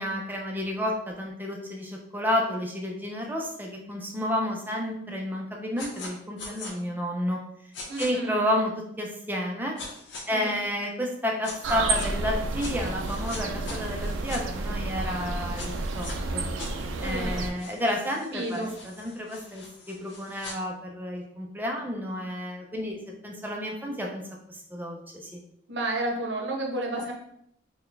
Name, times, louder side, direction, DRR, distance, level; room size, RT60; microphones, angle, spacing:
voice 1, 0.0-7.4 8.0-8.7 9.0-9.7 10.3-16.4 17.0-23.0 23.2-24.2 24.5-25.4, equal, 10° right, 0 dB, 0.5 m, -31 dB
sound 1, 5.8-6.1 6.4-6.7 7.7-8.1 9.8-10.2 11.4-12.1 12.6-14.4 15.5-16.2 16.6-20.5, left 3 dB, 65° left, 0.8 m, -42 dB
voice 2, 7.9-8.4 10.3-10.7 17.0-17.4 18.2-18.7 25.7-27.1, right 1 dB, 65° right, 1 dB, 0.8 m, -31 dB
sound 2, 11.6-17.5, right 2 dB, 85° right, 0.4 m, -31 dB
4.2 x 2.2 x 3.2 m, 0.73 s
head